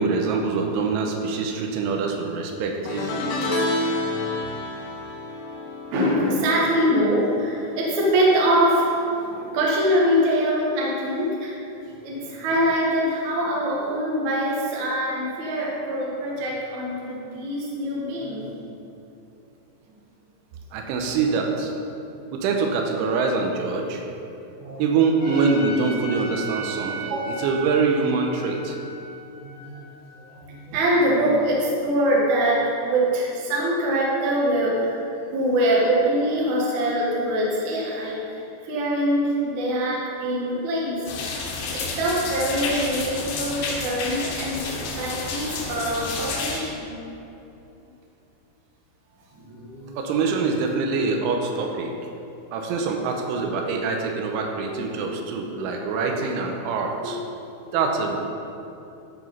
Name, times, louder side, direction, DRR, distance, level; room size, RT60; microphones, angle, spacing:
voice 1, 0.0-3.2 20.7-21.7 22.3-24.0 24.8-27.1 27.4-28.8 50.0-51.9 52.5-57.2 57.7-58.2, right 4 dB, 90° right, 2 dB, 3.2 m, -24 dB
sound 1, 2.9-8.3 8.5-8.9 10.1-10.2, left 2 dB, 90° left, 3.7 m, -30 dB
voice 2, 3.9-4.3 5.9-8.9 9.2-11.6 11.9-18.5 24.6-24.8 27.0-27.4 29.4-29.8 30.3-35.0 35.3-41.1 41.7-47.0 49.3-50.5 55.1-55.2 55.8-55.9 57.0-57.2 57.7-57.8, equal, 55° right, -4 dB, 2.2 m, -24 dB
Trumpet, 25.2-30.4, right 2 dB, 30° left, 1.4 m, -37 dB
sound 2, 41.1-46.6, left 4 dB, 70° left, 3.2 m, -30 dB
13.5 x 4.9 x 5.5 m, 2.8 s
omnidirectional pair, 5.6 m